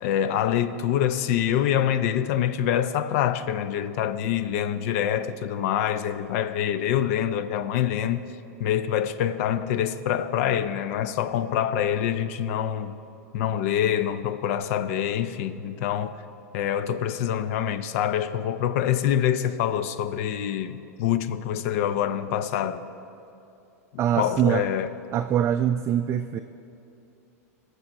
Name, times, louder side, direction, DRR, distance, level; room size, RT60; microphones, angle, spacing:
voice 1, 0.0-8.2 8.6-13.0 13.3-16.2 16.5-22.9 24.2-24.9, left 10 dB, 60° left, 0.5 m, -25 dB
voice 2, 24.0-24.6 25.1-26.4, right 10 dB, 30° right, 0.3 m, -23 dB
18.5 x 6.8 x 4.2 m
hypercardioid pair, 110°, 9 cm